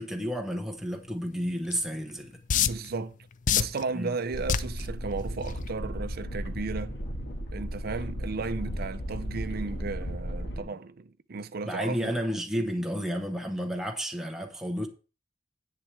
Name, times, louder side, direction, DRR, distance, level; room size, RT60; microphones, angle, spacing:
voice 1, 0.0-2.4 3.9-4.1 10.5-10.7 11.7-14.9, equal, 5° right, 1.0 m, -31 dB
sound 1, 1.7-1.8 2.5-2.9 3.5-3.8 4.5-4.8 5.5-5.7, left 8 dB, 45° left, 0.5 m, -24 dB
voice 2, 2.5-3.2 3.5-7.0 7.5-12.1, right 4 dB, 55° right, 0.6 m, -34 dB
sound 2, 4.3-10.6, equal, 65° left, 1.6 m, -35 dB
10.5 x 8.3 x 3.3 m
head